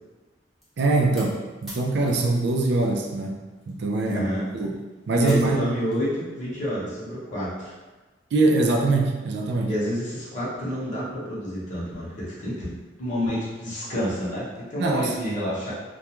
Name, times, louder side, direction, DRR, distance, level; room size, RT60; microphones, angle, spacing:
sound 1, 0.6-3.2 3.5-6.1, equal, ahead, 0.7 m, -45 dB
voice 1, 0.8-4.2 4.5-4.8 5.1-5.7 8.3-9.7 14.8-15.1, right 2 dB, 65° right, 2 dB, 0.3 m, -23 dB
voice 2, 4.1-4.5 5.1-7.8 9.6-15.7, equal, 45° left, -8 dB, 0.8 m, -29 dB
2.3 x 2.2 x 2.9 m, 1.2 s
head